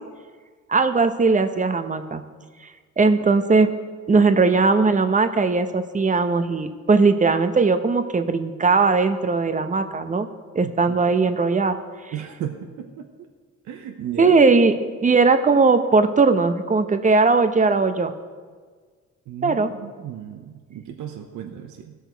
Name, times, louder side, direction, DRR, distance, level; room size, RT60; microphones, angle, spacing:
voice 1, 0.7-2.2 3.0-3.7 4.1-10.3 10.5-11.8 14.2-18.1 19.4-19.7, right 4 dB, 25° right, 9 dB, 0.8 m, -19 dB
voice 2, 10.6-11.0 12.1-13.3 13.6-14.3 19.3-22.0, right 9 dB, 75° right, 3 dB, 0.9 m, -35 dB
17.0 x 6.4 x 4.6 m, 1.5 s
cardioid pair, 90°, 30 cm